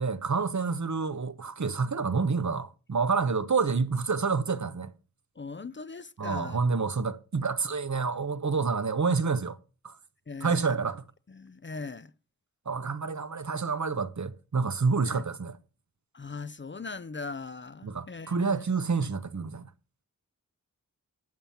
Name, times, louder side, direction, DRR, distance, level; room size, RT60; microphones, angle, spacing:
voice 1, 0.0-4.9 6.2-9.6 9.8-10.0 10.4-11.0 12.7-15.6 17.8-19.7, right 4 dB, 55° right, 0.8 m, -28 dB
voice 2, 5.4-6.6 10.3-10.7 11.3-12.1 15.1-15.2 16.1-18.7, left 4 dB, 35° left, 0.5 m, -40 dB
12.5 x 7.2 x 5.6 m
wide cardioid pair, 55°, 34 cm